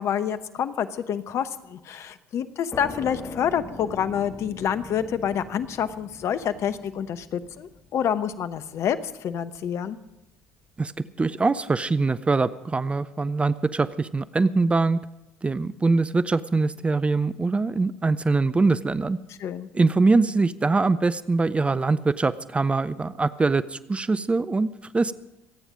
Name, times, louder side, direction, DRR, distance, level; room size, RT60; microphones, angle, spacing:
voice 1, 0.0-10.0 19.4-19.7, left 8 dB, 50° left, 12 dB, 1.0 m, -28 dB
sound 1, 2.7-10.1, left 3 dB, 25° left, 2.5 m, -42 dB
voice 2, 10.8-15.0 15.4-19.2 19.7-25.1, right 3 dB, 20° right, 16 dB, 0.6 m, -23 dB
25.5 x 9.1 x 5.1 m, 0.91 s
hypercardioid pair, 60°, 6 cm